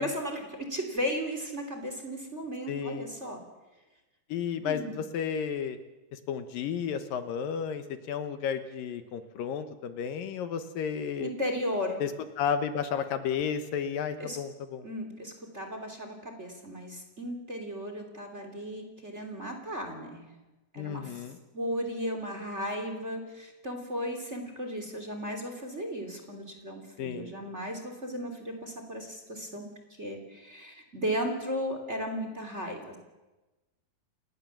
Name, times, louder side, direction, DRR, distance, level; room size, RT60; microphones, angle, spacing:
voice 1, 0.0-3.4 4.6-5.0 11.2-12.0 14.2-14.4 14.8-20.3 20.7-21.1 21.5-29.7 30.0-33.0, equal, 20° right, 4 dB, 3.1 m, -35 dB
voice 2, 2.7-3.1 4.3-5.8 6.1-11.3 12.0-12.1 12.4-14.9 20.8-21.4 27.0-27.3, left 7 dB, 75° left, 9 dB, 2.8 m, -32 dB
30.0 x 18.0 x 7.4 m, 1.1 s
omnidirectional pair, 4.2 m